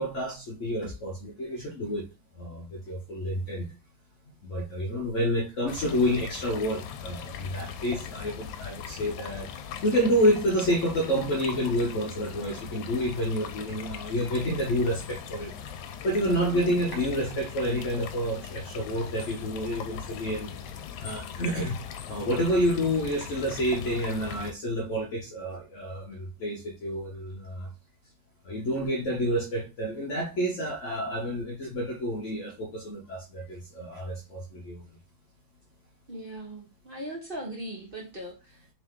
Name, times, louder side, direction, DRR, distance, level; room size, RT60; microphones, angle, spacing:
voice 1, 0.0-2.1 2.3-3.7 4.4-9.5 9.8-15.5 16.0-20.5 21.0-21.8 22.1-27.7 28.4-35.0, equal, 60° left, 0.8 m, -29 dB
sound 1, 5.7-24.5, left 8 dB, 80° left, 1.4 m, -40 dB
voice 2, 36.1-38.6, right 1 dB, 45° right, 0.7 m, -39 dB
3.6 x 3.3 x 3.6 m
omnidirectional pair, 2.1 m